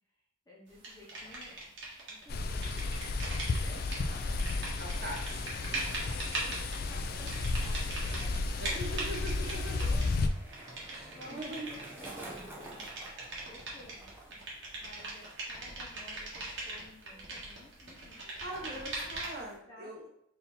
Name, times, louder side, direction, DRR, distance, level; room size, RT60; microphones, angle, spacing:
voice 1, 0.5-1.7 2.1-2.7 3.2-4.4 5.7-12.8 13.4-14.4 14.7-19.3 19.7-20.1, left 1 dB, 20° left, -3 dB, 0.9 m, -54 dB
sound 1, 0.8-2.2 2.5-19.5, right 2 dB, 65° right, 1.3 m, -41 dB
sound 2, 2.3-10.3, left 3 dB, 45° left, 0.3 m, -33 dB
voice 2, 4.8-5.4 8.6-9.8 10.9-11.7 18.4-20.0, right 1 dB, 50° right, -1 dB, 0.9 m, -41 dB
Skateboard, 8.5-15.6 15.9-16.4, right 1 dB, 10° right, 0.6 m, -51 dB
4.3 x 2.7 x 4.1 m, 0.74 s
head